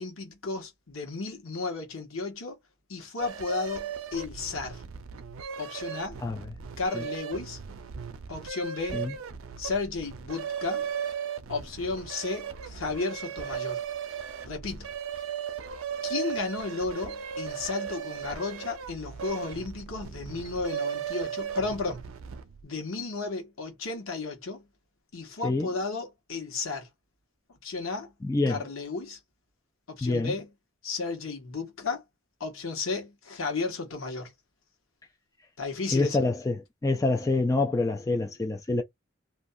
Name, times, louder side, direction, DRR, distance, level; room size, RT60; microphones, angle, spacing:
voice 1, 0.0-2.6 2.9-4.8 5.6-6.2 6.8-7.6 8.3-9.0 9.6-10.9 11.5-13.8 14.4-14.9 16.0-22.1 22.6-24.6 25.1-26.9 27.6-28.1 28.5-29.2 29.9-30.5 30.8-32.0 32.4-34.3 35.6-36.2, left 3 dB, 85° left, 1.2 m, -33 dB
sound 1, 3.2-22.6, right 8 dB, 90° right, 0.4 m, -37 dB
voice 2, 28.2-28.6 30.0-30.3 35.9-36.5 36.8-38.8, left 2 dB, 15° left, 0.3 m, -26 dB
2.6 x 2.3 x 2.6 m
head